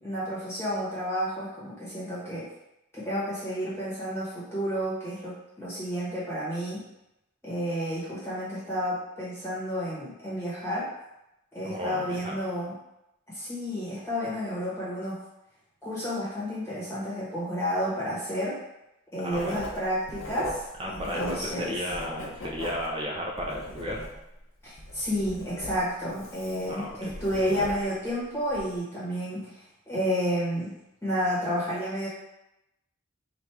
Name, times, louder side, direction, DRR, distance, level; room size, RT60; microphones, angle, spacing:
voice 1, 0.0-2.5 2.9-6.8 7.4-10.9 11.5-12.7 13.3-15.2 15.8-18.6 19.1-21.8 24.6-30.7 31.0-32.1, equal, 10° left, -9 dB, 1.1 m, -31 dB
voice 2, 11.6-12.4 19.2-19.6 20.8-24.1 26.7-27.1, equal, 25° right, -2 dB, 0.7 m, -34 dB
Writing, 19.3-21.6 21.9-24.4 24.8-28.0 28.5-28.7, equal, 65° left, 0.7 m, -38 dB
3.4 x 2.5 x 4.4 m, 0.88 s
head